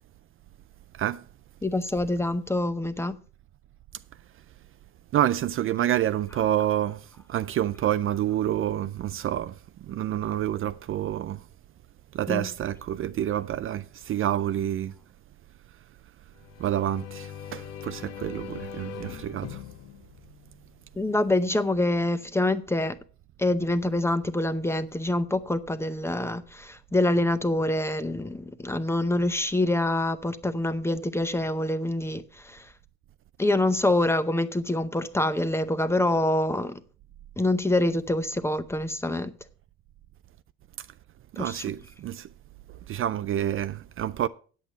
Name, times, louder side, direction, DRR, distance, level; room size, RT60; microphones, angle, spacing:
voice 1, 1.6-3.2 12.3-12.5 21.0-23.0 23.4-32.7 33.4-36.8 37.4-39.3 41.4-41.7 43.1-43.2, left 1 dB, 10° left, 0.6 m, -26 dB
voice 2, 5.1-11.4 12.1-14.9 16.6-19.6 41.3-42.3 42.9-44.3, right 12 dB, 45° right, 0.4 m, -28 dB
sound 1, 16.3-21.1, left 9 dB, 55° left, 0.8 m, -42 dB
8.8 x 8.1 x 5.7 m
cardioid pair, 135°, 30 cm